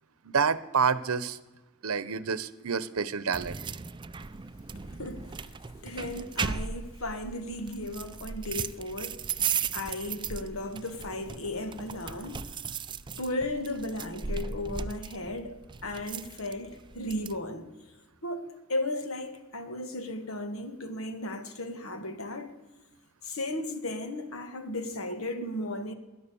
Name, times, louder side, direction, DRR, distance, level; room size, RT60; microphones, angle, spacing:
voice 1, 0.2-1.4 1.8-3.6, right 6 dB, 80° right, 0.8 m, -28 dB
sound 1, 3.3-17.4, right 6 dB, 20° right, 0.4 m, -37 dB
voice 2, 4.9-9.4 9.7-12.6 13.2-17.7 18.2-22.6 23.2-25.9, left 1 dB, 70° left, 1.6 m, -35 dB
17.5 x 10.5 x 7.0 m
head